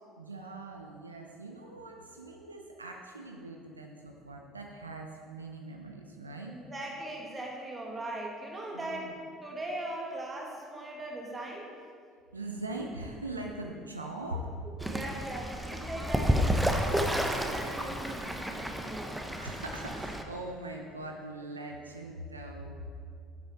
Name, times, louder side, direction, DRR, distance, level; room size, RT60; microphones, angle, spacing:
voice 1, 0.2-6.5 8.7-9.1 12.3-14.5 19.4-22.8, right 2 dB, 85° right, 2 dB, 0.6 m, -41 dB
voice 2, 6.5-9.1 9.4-11.8 14.8-16.4 16.7-19.1, right 1 dB, 20° right, -1 dB, 2.1 m, -39 dB
Fowl / Bird, 14.8-20.2, equal, 5° right, 0.9 m, -31 dB
9.4 x 8.0 x 4.4 m, 2.3 s
figure-of-eight pair, 60°, 0 cm